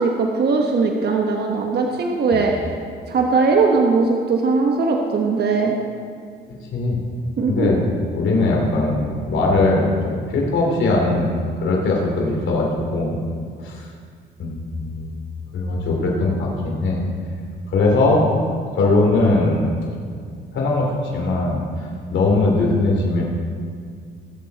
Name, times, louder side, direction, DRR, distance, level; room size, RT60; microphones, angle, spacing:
voice 1, 0.0-2.5 3.1-5.7 7.4-7.7, right 4 dB, 55° right, 1 dB, 1.2 m, -19 dB
voice 2, 7.5-7.8 8.1-11.4 11.6-13.2 13.6-13.8 14.4-15.2 15.5-17.0 17.7-18.3 18.8-19.7 20.5-21.6 22.1-23.2, left 2 dB, 70° left, -1 dB, 3.1 m, -20 dB
19.5 x 7.6 x 4.1 m, 2.1 s
cardioid pair, 90°, 20 cm